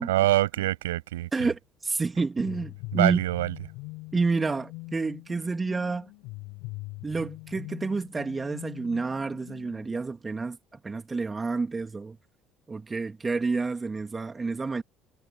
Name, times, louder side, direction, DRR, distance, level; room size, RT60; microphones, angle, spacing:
voice 1, 0.1-1.5 2.9-3.5, right 16 dB, 80° right, 7.6 m, -25 dB
voice 2, 1.3-3.2 4.1-6.1 7.0-12.2 12.7-14.8, right 4 dB, 25° right, 2.9 m, -29 dB
sound 1, 2.4-10.0, left 25 dB, 70° left, 4.9 m, -42 dB
hypercardioid pair, 60°, 0 cm